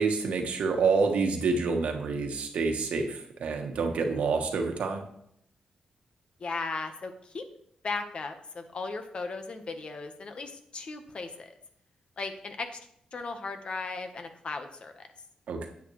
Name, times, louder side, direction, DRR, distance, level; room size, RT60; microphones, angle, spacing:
voice 1, 0.0-5.0 15.5-15.7, right 4 dB, 80° right, 4 dB, 1.4 m, -27 dB
voice 2, 6.4-7.5 7.8-11.5 12.2-12.8 13.1-15.0, left 3 dB, 50° left, 7 dB, 1.2 m, -36 dB
9.6 x 8.4 x 3.2 m, 0.71 s
cardioid pair, 95°, 2 cm